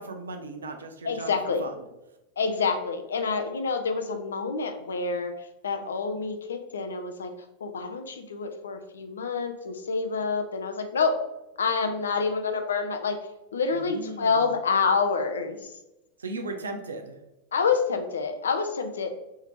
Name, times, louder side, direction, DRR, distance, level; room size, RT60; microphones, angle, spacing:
voice 1, 0.0-1.3 1.6-1.7 13.7-14.5 16.2-17.2, right 2 dB, 70° right, 6 dB, 0.4 m, -37 dB
voice 2, 1.0-1.7 2.4-7.3 7.6-11.2 11.6-13.2 13.5-15.7 17.5-19.1, left 5 dB, 70° left, 6 dB, 0.4 m, -27 dB
3.4 x 2.7 x 3.0 m, 0.93 s
figure-of-eight pair, 90°, 0 cm